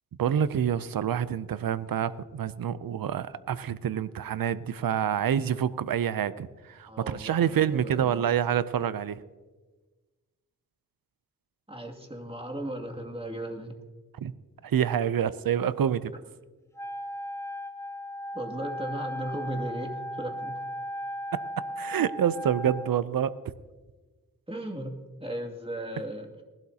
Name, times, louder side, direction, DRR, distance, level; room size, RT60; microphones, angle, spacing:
voice 1, 0.2-9.2 14.2-14.3 14.6-16.1 21.3-21.4 21.8-23.4, right 9 dB, 90° right, 15 dB, 0.5 m, -27 dB
voice 2, 6.9-8.2 11.7-13.7 18.3-20.6 24.5-26.4, right 1 dB, 15° right, 2 dB, 2.3 m, -36 dB
Wind instrument woodwind instrument, 16.7-22.9, equal, 10° left, 0.9 m, -36 dB
19.5 x 12.0 x 2.8 m, 1.3 s
cardioid pair, 45°, 34 cm